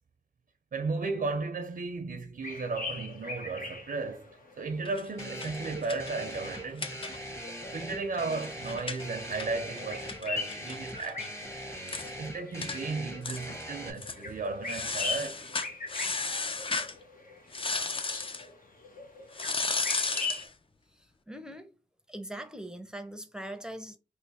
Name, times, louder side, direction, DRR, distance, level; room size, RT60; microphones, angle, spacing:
voice 1, 0.7-7.1 7.7-11.3 12.2-15.6, right 3 dB, 70° right, 0.5 m, -35 dB
sound 1, 2.4-20.5, left 4 dB, 65° left, 0.9 m, -42 dB
sound 2, 4.9-7.5 7.8-7.9 8.1-11.3 11.6-11.7 11.9-12.1 12.6-12.8 13.2-13.6 14.0-14.2 14.7-17.0 17.5-18.5 19.3-20.5, left 3 dB, 35° left, 0.5 m, -34 dB
sound 3, 5.2-13.9, equal, 20° left, 0.9 m, -42 dB
voice 2, 20.9-21.7 22.1-24.0, right 1 dB, 5° right, 0.6 m, -41 dB
3.2 x 2.1 x 4.0 m
wide cardioid pair, 65°, 15 cm